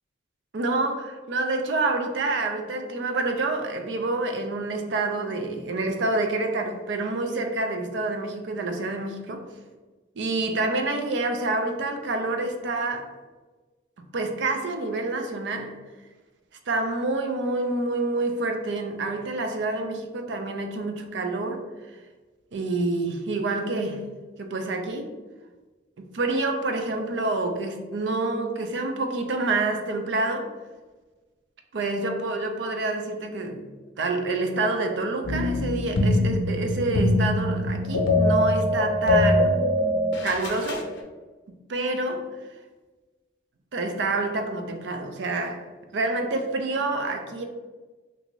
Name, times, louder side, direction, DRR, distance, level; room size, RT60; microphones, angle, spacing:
voice 1, 0.5-9.4 10.2-13.1 14.0-15.7 16.7-21.6 22.5-24.1 24.4-25.1 26.0-30.5 31.7-33.6 34.0-39.6 40.2-40.9 41.7-42.3 43.7-45.6 45.9-47.4, right 2 dB, 85° right, 5 dB, 0.5 m, -27 dB
sound 1, 35.2-40.9, left 1 dB, 90° left, 0.6 m, -23 dB
3.4 x 2.6 x 3.0 m, 1.3 s
head